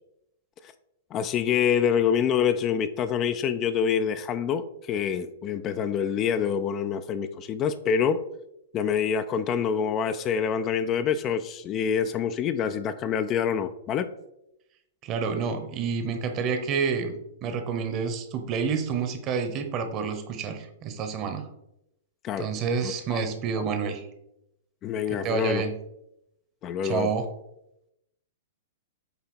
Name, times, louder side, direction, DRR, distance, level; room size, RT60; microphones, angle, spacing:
voice 1, 1.1-8.2 8.7-14.1 22.2-22.5 22.8-23.2 24.8-25.6 26.6-27.1, left 7 dB, 30° left, 10 dB, 0.4 m, -26 dB
voice 2, 15.0-17.1 17.4-21.5 22.4-24.1 25.2-25.8 26.8-27.3, right 6 dB, 35° right, 8 dB, 1.0 m, -28 dB
8.0 x 2.8 x 4.4 m, 0.83 s
hypercardioid pair, 110°, 0 cm